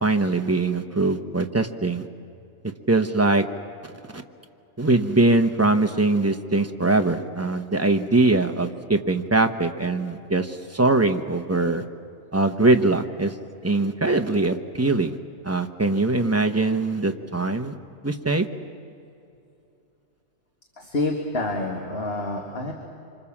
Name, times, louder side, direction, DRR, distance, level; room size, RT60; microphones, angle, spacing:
voice 1, 0.0-2.0 2.9-3.4 4.1-4.2 4.8-11.8 12.3-13.3 13.6-15.2 15.4-17.7 18.0-18.5, right 2 dB, 10° right, 6 dB, 0.8 m, -22 dB
voice 2, 20.8-22.7, left 2 dB, 40° left, 1 dB, 2.1 m, -27 dB
26.0 x 26.0 x 7.3 m, 2.6 s
omnidirectional pair, 1.6 m